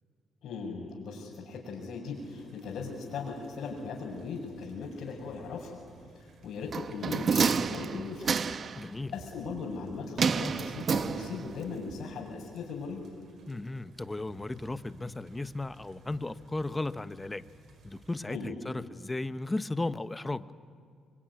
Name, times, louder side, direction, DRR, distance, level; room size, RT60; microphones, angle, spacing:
voice 1, 0.4-5.8 6.1-8.4 9.1-13.1 18.3-18.5, left 4 dB, 70° left, -6 dB, 5.8 m, -38 dB
sound 1, 2.1-18.1, right 3 dB, 65° right, 5.0 m, -56 dB
sound 2, 6.7-8.8 10.2-11.6 11.9-12.0, right 5 dB, 50° right, 0.9 m, -29 dB
voice 2, 8.8-9.1 13.5-17.4 17.8-20.5, left 2 dB, 15° left, 13 dB, 0.9 m, -35 dB
25.0 x 24.0 x 9.6 m, 2.2 s
cardioid pair, 90°, 0 cm